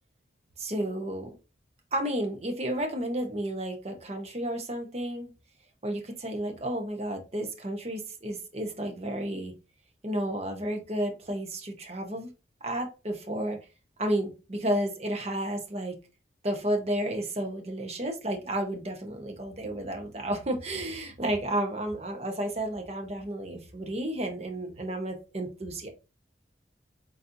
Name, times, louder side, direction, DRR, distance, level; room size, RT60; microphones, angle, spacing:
voice 1, 0.6-1.4 1.9-5.3 5.8-9.5 10.0-12.3 12.6-13.6 14.0-16.0 16.4-25.9, right 1 dB, 35° right, 4 dB, 0.9 m, -32 dB
4.1 x 3.9 x 2.6 m, 0.30 s
head